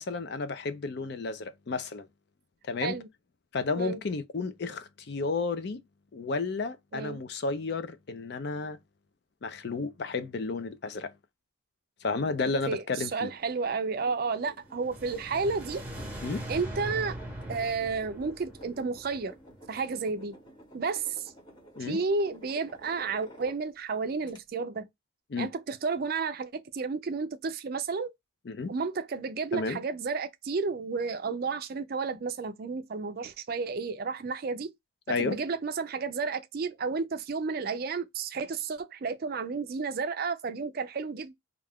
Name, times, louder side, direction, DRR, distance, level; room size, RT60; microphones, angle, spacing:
voice 1, 0.0-2.1 2.7-3.0 3.5-5.8 6.1-8.8 9.4-11.1 12.0-13.3 16.2-16.4 21.8-22.0 25.3-25.5 28.5-28.7 29.5-29.8 35.1-35.4, left 4 dB, 55° left, 0.4 m, -32 dB
voice 2, 12.7-15.8 16.5-17.2 17.5-19.3 19.7-20.4 20.7-21.3 21.8-24.9 25.4-28.1 28.7-34.7 35.1-41.3, right 4 dB, 45° right, 0.4 m, -32 dB
sound 1, 13.4-23.9 24.3-24.4, right 1 dB, 20° left, 0.9 m, -53 dB
sound 2, 14.7-19.8, right 1 dB, 10° right, 0.7 m, -41 dB
2.3 x 2.3 x 3.4 m
head